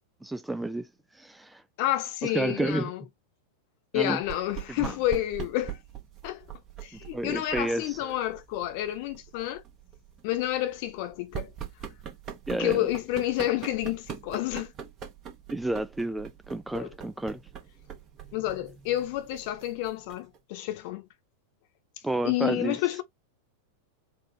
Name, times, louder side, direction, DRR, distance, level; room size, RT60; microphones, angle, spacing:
voice 1, 0.2-0.9 1.1-1.6 2.2-2.9 3.9-4.2 4.8-5.0 7.1-8.1 12.5-12.9 15.5-17.4 22.0-22.8, right 2 dB, 5° right, 0.4 m, -30 dB
voice 2, 1.8-3.0 3.9-5.8 6.2-6.4 6.8-9.6 10.2-11.5 12.5-14.7 16.7-16.9 18.3-21.1 22.2-23.0, left 14 dB, 45° left, 1.0 m, -30 dB
sound 1, 4.2-20.4, right 9 dB, 30° right, 1.3 m, -43 dB
4.5 x 2.3 x 4.3 m
figure-of-eight pair, 90°, 0 cm